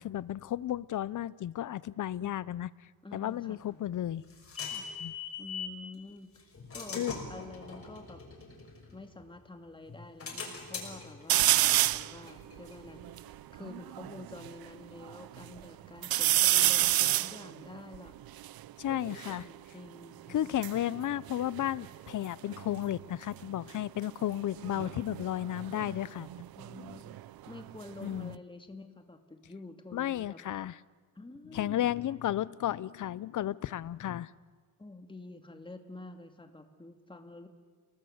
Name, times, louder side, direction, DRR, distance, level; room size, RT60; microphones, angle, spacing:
voice 1, 0.0-2.7 3.1-4.2 5.0-5.1 7.0-7.1 18.8-19.4 20.3-26.3 28.0-28.4 29.9-30.8 31.5-34.3, left 12 dB, 55° left, 20 dB, 0.7 m, -33 dB
voice 2, 3.0-3.8 4.7-4.9 5.4-6.3 6.7-8.2 8.9-13.0 13.5-18.1 19.1-20.5 25.9-26.0 26.6-27.2 27.5-30.4 31.2-31.9 34.8-37.5, left 2 dB, 15° left, 6 dB, 2.1 m, -48 dB
sound 1, 3.6-5.8 6.3-9.4 9.9-13.3, left 5 dB, 35° left, 5.9 m, -43 dB
sound 2, 11.3-12.1 12.7-12.8 13.0-14.5 15.0-15.6 16.0-19.4 20.3-22.2 22.5-23.0 24.6-27.2 27.6-28.3, right 14 dB, 70° right, 0.6 m, -29 dB
29.5 x 19.0 x 7.9 m, 1.5 s
cardioid pair, 135°, 37 cm